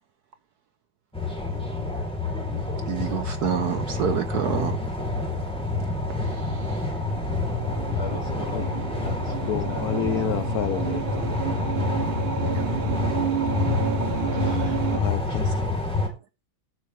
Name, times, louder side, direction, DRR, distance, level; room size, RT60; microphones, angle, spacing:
sound 1, 1.1-16.1, left 2 dB, 5° left, 3.3 m, -27 dB
voice 1, 2.9-4.8 6.3-6.8 12.5-12.6 14.3-14.7, right 9 dB, 65° right, 1.0 m, -29 dB
sound 2, 4.6-15.0, right 11 dB, 80° right, 1.6 m, -32 dB
voice 2, 7.9-10.0, left 1 dB, 35° left, 2.6 m, -40 dB
voice 3, 9.5-11.7 13.4-13.5 14.4-15.8, left 10 dB, 65° left, 1.0 m, -31 dB
19.0 x 6.5 x 3.2 m
omnidirectional pair, 2.2 m